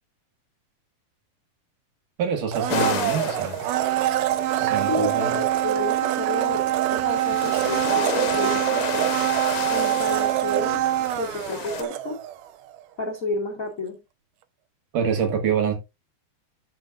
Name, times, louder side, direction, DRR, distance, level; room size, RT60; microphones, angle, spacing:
voice 1, 2.2-3.6 4.5-5.4 14.9-15.7, right 7 dB, 65° right, 3.3 m, -26 dB
Domestic sounds home sounds, 2.5-12.4 12.7-12.8, right 13 dB, 90° right, 2.6 m, -24 dB
sound 1, 2.7-11.8, left 10 dB, 70° left, 1.9 m, -33 dB
voice 2, 4.9-9.1 9.7-10.8 11.2-12.2 13.0-14.0, left 2 dB, 50° left, 1.0 m, -31 dB
13.0 x 6.3 x 2.5 m
omnidirectional pair, 4.2 m